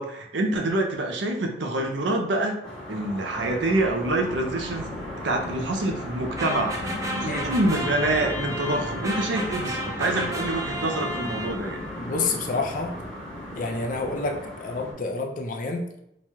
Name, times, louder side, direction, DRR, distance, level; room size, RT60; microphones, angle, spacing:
voice 1, 0.0-2.6 2.9-4.9 5.2-6.7 7.1-11.8, right 2 dB, 80° right, 3 dB, 0.6 m, -26 dB
sound 1, 2.6-14.9, left 1 dB, 5° left, 0.9 m, -36 dB
sound 2, 3.3-14.4, left 1 dB, 65° left, 1.1 m, -45 dB
sound 3, 6.4-11.9, equal, 20° right, 0.5 m, -33 dB
voice 2, 12.0-12.9 13.6-15.8, left 3 dB, 45° left, 2 dB, 0.5 m, -28 dB
3.1 x 2.3 x 4.3 m, 0.79 s
head